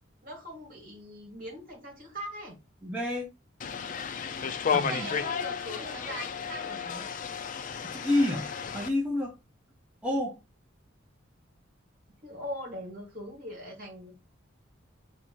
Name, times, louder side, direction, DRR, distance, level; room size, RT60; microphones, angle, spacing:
voice 1, 0.2-2.6 4.7-7.1 12.2-14.1, equal, 45° right, 1.7 m, -41 dB
voice 2, 2.8-3.3 4.7-5.1 7.8-8.5 8.7-9.3 10.0-10.4, left 1 dB, 5° right, 0.7 m, -28 dB
sound 1, 3.6-8.9, left 6 dB, 40° left, 0.4 m, -33 dB
3.4 x 2.7 x 4.4 m
head